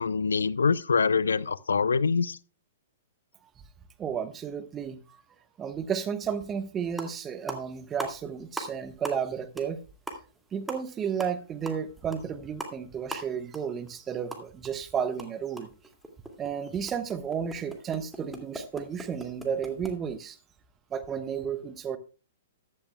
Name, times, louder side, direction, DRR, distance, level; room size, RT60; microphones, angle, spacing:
voice 1, 0.0-2.4, left 5 dB, 75° left, 0.6 m, -25 dB
voice 2, 4.0-5.2 5.6-9.8 10.5-15.7 16.4-20.4 20.9-22.0, right 7 dB, 20° right, 1.1 m, -32 dB
sound 1, 6.6-6.7 6.9-7.2 7.5-8.7 9.0-9.3 9.6-9.7 10.0-14.7 15.0-19.9, right 1 dB, ahead, 2.2 m, -40 dB
14.5 x 11.5 x 2.3 m
figure-of-eight pair, 115°, 0 cm